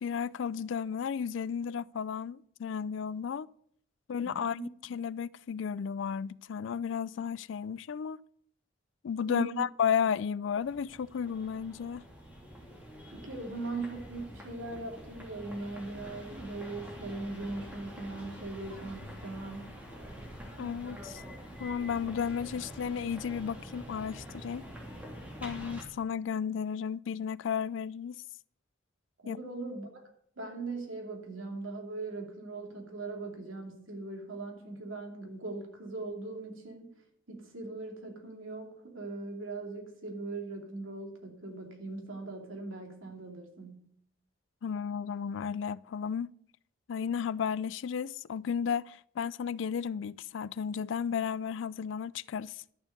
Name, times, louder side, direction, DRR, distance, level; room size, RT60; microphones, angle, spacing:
voice 1, 0.0-3.5 4.1-8.2 9.0-12.0 20.6-21.2 21.6-24.7 25.4-28.2 29.2-29.4 44.6-46.3 46.9-52.6, left 7 dB, 70° left, 0.3 m, -33 dB
voice 2, 4.2-4.7 9.3-9.6 13.1-19.7 29.2-30.0 30.4-36.9 37.3-43.9, right 3 dB, 85° right, 2.7 m, -40 dB
sound 1, 10.5-25.8, equal, 10° right, 2.9 m, -46 dB
11.5 x 7.2 x 6.6 m
head